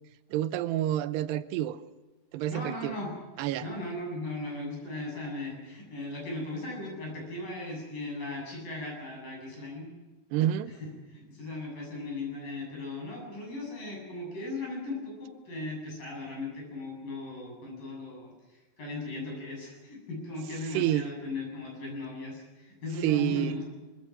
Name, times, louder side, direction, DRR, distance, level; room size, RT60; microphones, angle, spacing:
voice 1, 0.3-1.8 2.3-3.0 3.4-3.7 10.3-10.7 20.7-21.1 23.0-23.6, right 13 dB, 85° right, 13 dB, 2.9 m, -28 dB
voice 2, 2.5-3.1 3.6-9.9 10.7-10.8 11.1-23.6, left 2 dB, 55° left, 0 dB, 9.4 m, -37 dB
23.5 x 23.5 x 6.0 m, 1.2 s
omnidirectional pair, 4.7 m